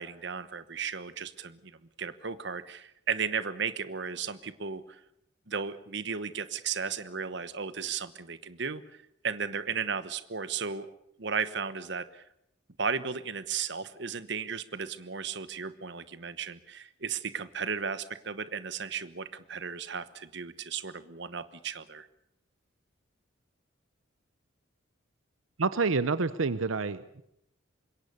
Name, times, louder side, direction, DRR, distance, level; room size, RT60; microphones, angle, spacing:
voice 1, 0.0-1.7 2.0-5.0 5.5-10.9 11.2-12.2 12.8-22.1, right 6 dB, 60° right, 14 dB, 1.1 m, -35 dB
voice 2, 25.6-27.2, right 4 dB, 80° right, 14 dB, 0.8 m, -28 dB
26.0 x 22.0 x 6.8 m, 0.78 s
head